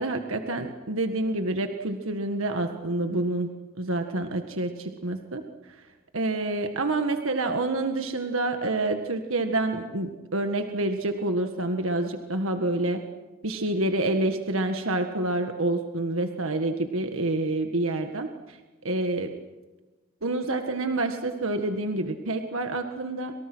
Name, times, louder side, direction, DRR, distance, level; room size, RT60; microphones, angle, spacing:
voice 1, 0.0-3.5 3.8-5.4 6.1-13.0 13.4-18.6 18.8-19.3 20.2-23.3, right 2 dB, 70° right, 6 dB, 1.7 m, -28 dB
29.5 x 27.0 x 6.3 m, 1.2 s
head